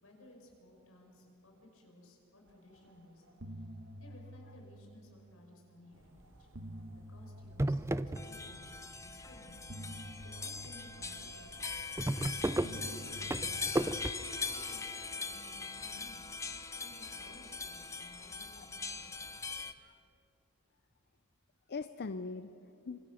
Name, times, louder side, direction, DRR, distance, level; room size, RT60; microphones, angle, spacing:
voice 1, 0.0-3.7 4.0-6.5 7.1-11.7 12.3-13.0 13.2-13.9 14.2-16.2 16.7-19.2, left 1 dB, 70° left, 1 dB, 5.7 m, -58 dB
sound 1, 2.7-3.0 3.2-5.6 6.2-8.7 9.7-12.1 12.6-15.2, right 1 dB, 60° right, 1.4 m, -50 dB
sound 2, 6.2-6.6 7.0-7.1 7.4-8.7 9.0-9.7 10.2-10.4 10.6-10.7 11.0-11.1 11.4-14.1, right 1 dB, 10° right, 0.5 m, -34 dB
sound 3, 8.2-19.7, left 4 dB, 15° left, 0.8 m, -41 dB
voice 2, 21.7-23.0, left 4 dB, 50° left, 11 dB, 0.5 m, -42 dB
26.0 x 24.5 x 6.4 m, 2.8 s
head